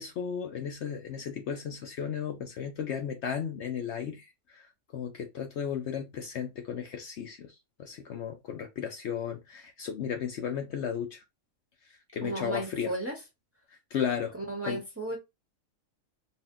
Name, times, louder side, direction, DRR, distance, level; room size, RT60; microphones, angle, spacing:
voice 1, 0.0-11.2 12.1-12.9 13.9-14.3 14.6-14.8, left 8 dB, 65° left, 0.8 m, -35 dB
voice 2, 12.2-13.2 14.3-15.2, right 1 dB, 10° right, 1.0 m, -34 dB
4.2 x 2.2 x 3.6 m
omnidirectional pair, 1.4 m